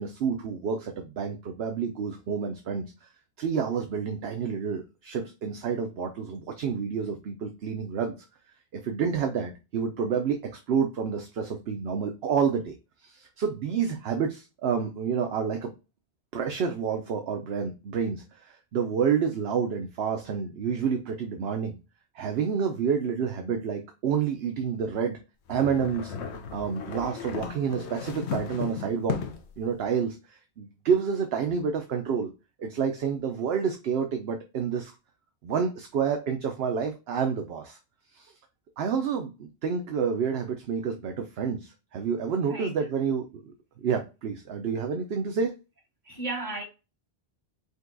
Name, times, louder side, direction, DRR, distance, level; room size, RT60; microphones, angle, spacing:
voice 1, 0.0-3.1 3.4-8.2 8.7-12.7 13.0-15.7 16.3-21.8 22.1-25.2 25.5-26.1 26.5-29.2 29.6-32.3 32.6-34.9 35.4-37.8 38.1-38.3 38.8-43.5 43.8-45.5, right 6 dB, 70° right, 0.9 m, -29 dB
sound 1, 25.5-29.6, left 7 dB, 85° left, 1.0 m, -35 dB
voice 2, 46.0-46.6, right 2 dB, 45° right, 2.0 m, -34 dB
5.3 x 2.3 x 3.8 m
omnidirectional pair, 1.1 m